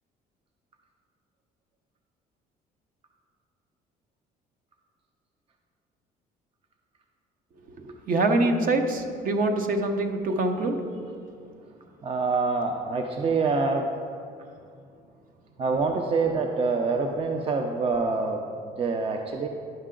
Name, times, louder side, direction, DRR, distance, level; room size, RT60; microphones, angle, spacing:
voice 1, 7.7-10.7, right 2 dB, 55° right, 5 dB, 0.9 m, -25 dB
voice 2, 12.0-13.9 15.6-18.4 18.8-19.5, right 4 dB, 35° right, 4 dB, 0.6 m, -26 dB
10.5 x 5.6 x 3.8 m, 2.3 s
cardioid pair, 110°, 17 cm